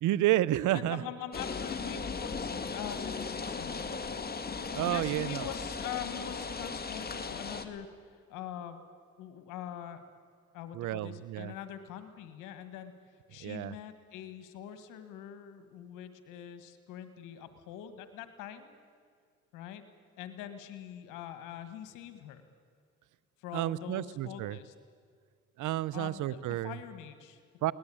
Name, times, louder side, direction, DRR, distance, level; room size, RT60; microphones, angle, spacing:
voice 1, 0.0-1.1 4.7-5.5 10.7-11.5 13.4-13.7 23.5-24.6 25.6-26.7 27.6-27.7, right 14 dB, 75° right, 19 dB, 0.8 m, -30 dB
voice 2, 0.7-3.8 4.8-8.8 9.2-10.0 10.5-12.9 13.3-18.8 19.5-19.8 20.2-22.4 23.4-24.7 25.9-27.7, left 10 dB, 90° left, 10 dB, 1.8 m, -44 dB
sound 1, 1.3-7.7, left 4 dB, 30° left, 2.0 m, -37 dB
22.5 x 18.5 x 8.7 m, 2.1 s
supercardioid pair, 70°, 31 cm